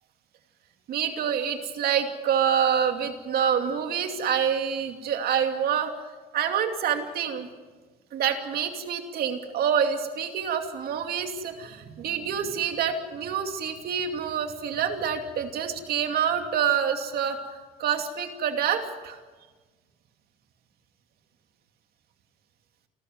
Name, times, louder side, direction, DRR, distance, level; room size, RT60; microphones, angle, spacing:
voice 1, 0.9-5.9 6.3-7.5 8.1-17.4 17.8-19.2, right 8 dB, 65° right, 5 dB, 2.6 m, -27 dB
29.5 x 13.0 x 8.0 m, 1.3 s
cardioid pair, 110°, 17 cm